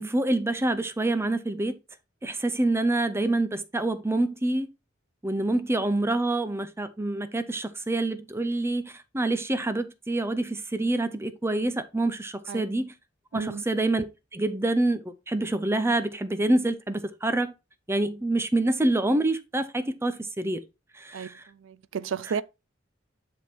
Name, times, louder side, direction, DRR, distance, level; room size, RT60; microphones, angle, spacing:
voice 1, 0.0-1.8 2.2-4.7 5.2-12.9 13.3-14.0 14.3-17.5 17.9-20.6 20.9-21.4 22.3-22.4, right 2 dB, 15° right, 0.6 m, -26 dB
voice 2, 13.3-13.6 21.1-21.3 21.6-22.4, right 6 dB, 90° right, 0.4 m, -32 dB
9.9 x 3.6 x 4.2 m
head